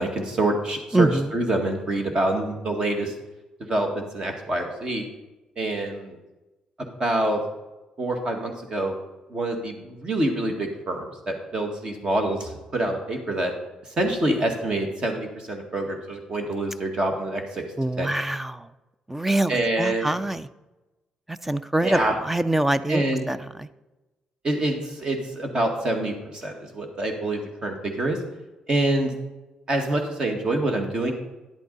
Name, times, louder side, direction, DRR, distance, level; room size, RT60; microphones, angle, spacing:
voice 1, 0.0-3.1 3.6-5.0 5.6-6.1 7.0-7.4 8.0-9.0 9.3-13.5 14.0-17.6 18.0-18.1 19.5-20.1 21.8-22.1 22.9-23.3 24.4-28.2 28.7-29.1 29.7-31.1, right 1 dB, 35° right, 3 dB, 1.8 m, -26 dB
voice 2, 0.9-1.3 17.8-18.7 19.1-20.5 21.3-23.7, right 2 dB, 10° right, 14 dB, 0.4 m, -25 dB
10.5 x 8.4 x 4.0 m, 1.1 s
cardioid pair, 115°, 2 cm